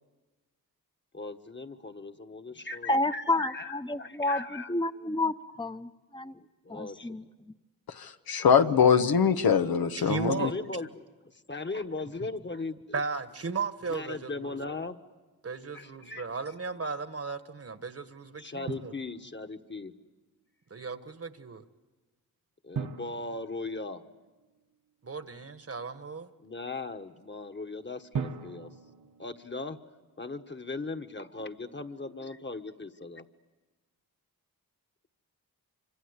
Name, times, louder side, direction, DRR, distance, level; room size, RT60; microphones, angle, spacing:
voice 1, 1.1-4.7 6.6-7.3 10.4-11.1 11.5-13.0 13.9-15.0 15.7-16.3 18.4-19.9 22.6-24.0 26.4-28.7 29.2-29.8 30.2-33.2, left 3 dB, 30° left, 1.5 m, -38 dB
voice 2, 2.9-6.3 6.7-7.2, left 2 dB, 15° left, 1.0 m, -30 dB
voice 3, 8.0-10.5, left 7 dB, 80° left, 1.1 m, -23 dB
voice 4, 10.0-10.5 12.9-14.6 15.4-18.9 20.7-21.6 25.0-26.3, right 4 dB, 40° right, 1.4 m, -35 dB
Drum, 18.7-19.7 22.7-24.6 28.1-30.1, right 6 dB, 60° right, 1.3 m, -40 dB
26.0 x 25.0 x 8.2 m
cardioid pair, 55°, 36 cm